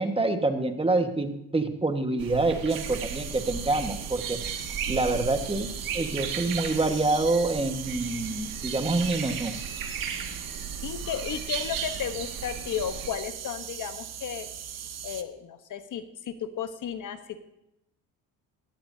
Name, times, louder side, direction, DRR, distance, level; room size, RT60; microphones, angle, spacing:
voice 1, 0.0-4.4 4.9-9.5, right 2 dB, 15° right, 6 dB, 1.5 m, -27 dB
sound 1, 2.2-13.1, right 7 dB, 70° right, 2.0 m, -36 dB
sound 2, 2.7-15.2, right 9 dB, 45° right, 1.1 m, -39 dB
voice 2, 10.8-14.5 15.0-17.4, left 8 dB, 55° left, 9 dB, 1.2 m, -34 dB
17.0 x 15.0 x 2.8 m, 0.84 s
supercardioid pair, 85°, 35 cm